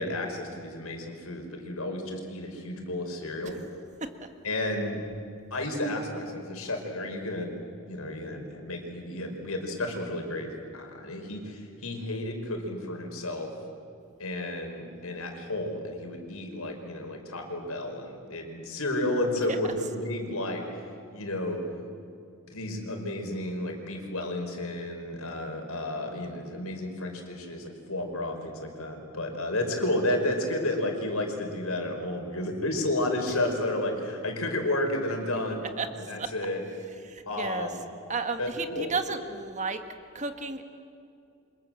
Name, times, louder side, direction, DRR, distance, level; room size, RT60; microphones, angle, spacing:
voice 1, 0.0-3.6 4.4-5.0 5.5-7.5 7.9-13.5 14.2-20.6 21.1-21.6 22.5-35.7 36.1-36.6 37.3-37.8 38.4-38.9, left 1 dB, 75° left, 3 dB, 5.4 m, -32 dB
voice 2, 37.0-37.7 38.1-39.8 40.1-40.6, right 4 dB, 35° right, 7 dB, 1.6 m, -32 dB
29.0 x 26.0 x 7.8 m, 2.5 s
head